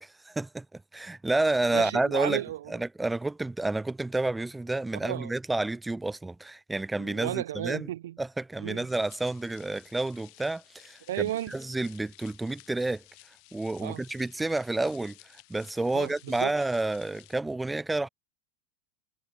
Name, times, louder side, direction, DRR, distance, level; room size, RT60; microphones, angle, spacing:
voice 1, 0.0-2.4 2.7-7.9 8.2-13.0 13.5-18.1, right 2 dB, 10° right, 0.5 m, -30 dB
voice 2, 1.7-2.7 4.9-5.3 7.0-8.2 8.6-8.9 11.1-11.5 13.8-14.0 15.9-16.5, right 13 dB, 80° right, 0.8 m, -33 dB
sound 1, 8.9-17.4, left 37 dB, 60° left, 7.4 m, -55 dB
supercardioid pair, 120°, 0 cm